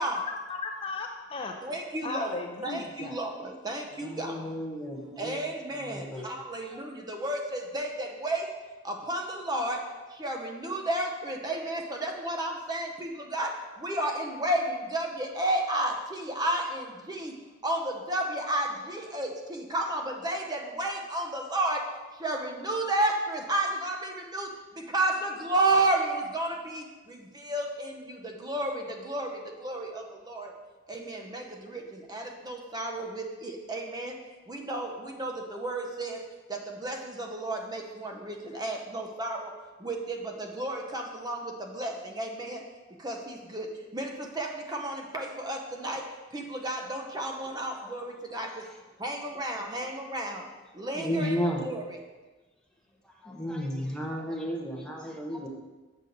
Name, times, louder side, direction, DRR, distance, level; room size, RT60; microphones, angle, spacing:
voice 1, 0.0-1.5 2.0-3.1, left 4 dB, 30° left, 3 dB, 0.4 m, -36 dB
voice 2, 1.7-2.3 2.6-3.3 3.6-4.3 5.2-6.0 6.4-8.4 9.1-9.2 9.5-9.8 10.2-13.5 13.8-14.6 14.9-15.9 16.4-16.8 17.2-17.3 17.6-17.8 18.1-18.7 18.9-19.3 19.7-21.8 22.2-24.0 24.3-24.5 24.9-26.5 27.5-27.6 28.5-28.7 29.1-29.3 29.6-29.9 30.3-30.5 30.9-31.4 32.1-33.2 33.7-34.1 34.5-34.9 35.2-35.3 35.6-36.2 36.8-37.0 37.3-39.4 39.8-40.0 40.6-41.4 41.8-41.9 42.2-42.6 43.0-43.1 43.5-43.6 43.9-44.1 44.4-44.5 44.8-45.6 45.8-46.0 46.3-48.5 49.0-50.4 50.8-51.3 51.7-51.8, right 1 dB, 20° right, 2 dB, 0.7 m, -31 dB
voice 3, 4.0-5.4 5.7-6.4 6.7-6.8 50.9-51.7 53.0-55.5, equal, 5° left, -1 dB, 0.9 m, -33 dB
6.7 x 6.3 x 3.9 m, 1.2 s
head